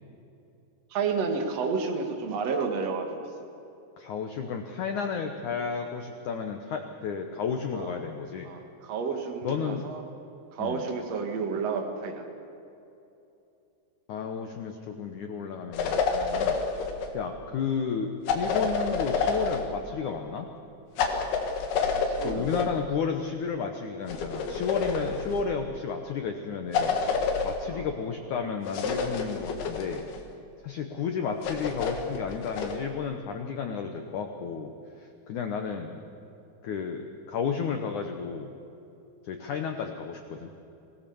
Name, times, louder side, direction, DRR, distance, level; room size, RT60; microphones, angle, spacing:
voice 1, 0.9-3.2 7.7-7.9 8.4-10.0 10.5-12.2 16.3-16.6 22.1-22.6 27.7-27.8, right 5 dB, 45° right, 4 dB, 2.4 m, -31 dB
voice 2, 4.0-8.5 9.4-9.9 10.6-10.8 14.1-20.5 22.2-27.0 27.4-30.1 30.6-36.0 36.6-38.5 39.2-40.5, left 6 dB, 85° left, 4 dB, 1.7 m, -32 dB
sound 1, 15.7-17.1 18.3-19.7 21.0-22.7 24.1-25.4 26.7-27.6 28.7-30.2 31.4-32.8, left 5 dB, 65° left, 3.6 m, -28 dB
26.5 x 17.5 x 7.1 m, 2.8 s
omnidirectional pair, 5.2 m